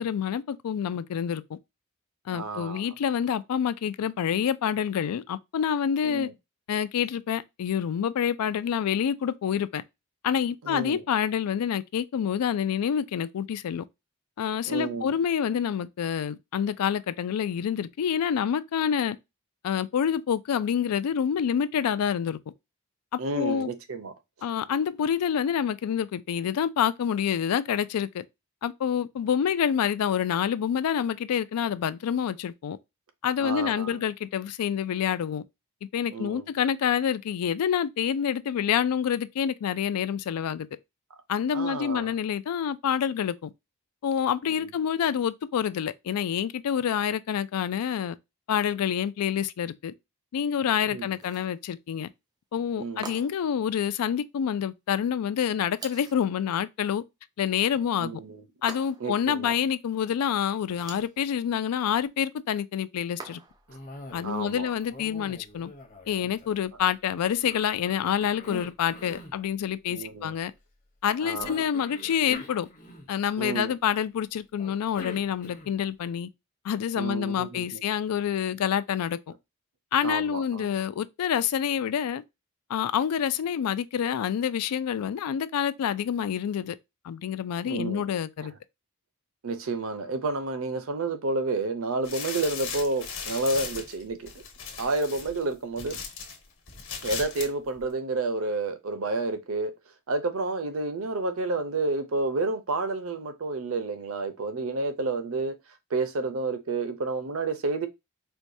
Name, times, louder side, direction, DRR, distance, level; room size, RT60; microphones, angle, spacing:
voice 1, 0.0-1.6 2.3-6.3 6.7-9.8 10.2-13.8 14.4-19.2 19.6-22.4 23.1-23.7 24.4-28.2 28.6-32.8 33.2-35.4 35.9-40.7 41.3-43.5 44.0-48.2 48.5-49.9 50.3-52.1 52.5-57.0 57.4-58.1 58.6-63.4 64.1-65.7 66.1-70.5 71.0-72.7 73.1-76.3 76.6-79.2 79.9-82.2 82.7-86.8 87.0-88.5, left 8 dB, 90° left, 0.3 m, -27 dB
voice 2, 2.3-2.9 6.0-6.3 10.6-11.0 14.7-15.1 23.2-24.1 33.4-34.0 36.1-36.5 41.5-42.1 44.6-44.7 50.9-51.1 52.8-53.1 58.0-58.4 59.0-59.5 64.2-64.7 69.9-70.3 71.2-71.7 73.4-73.8 76.9-77.8 80.0-80.8 87.6-88.1 89.4-94.3 94.8-96.0 97.0-99.7 100.1-105.6 105.9-107.9, right 3 dB, 65° right, 0.6 m, -30 dB
sound 1, 51.1-51.6 53.0-53.5 55.8-56.3 58.7-59.2 60.6-61.2 63.2-63.7, right 3 dB, 15° right, 0.4 m, -43 dB
Cough, 63.7-64.5 64.8-66.9 67.4-69.4 71.3-73.4 74.6-75.9, left 1 dB, 35° left, 0.9 m, -44 dB
Plastic bag, 92.0-96.4 96.7-97.5 97.8-97.9, left 6 dB, 55° left, 1.2 m, -37 dB
4.5 x 2.2 x 2.6 m
head